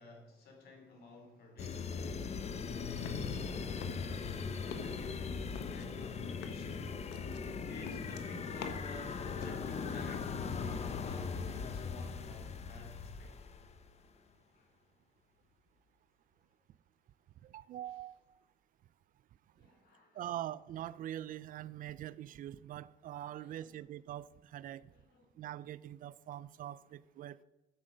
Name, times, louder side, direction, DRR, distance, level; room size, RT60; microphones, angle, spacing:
voice 1, 0.0-1.9 2.4-4.4 4.8-6.9 7.7-13.4 14.5-14.7 19.5-20.3 23.2-23.9 24.9-25.3, left 2 dB, 70° left, 2.8 m, -54 dB
sound 1, 1.6-13.9, left 5 dB, 40° left, 0.8 m, -39 dB
sound 2, 2.3-3.5 3.8-4.3 4.6-5.0 5.6-9.0 9.3-10.3, left 6 dB, 85° left, 1.1 m, -47 dB
voice 2, 17.4-18.1 20.1-24.9 25.4-27.4, right 12 dB, 55° right, 0.4 m, -43 dB
10.5 x 7.6 x 5.0 m
cardioid pair, 110°, 17 cm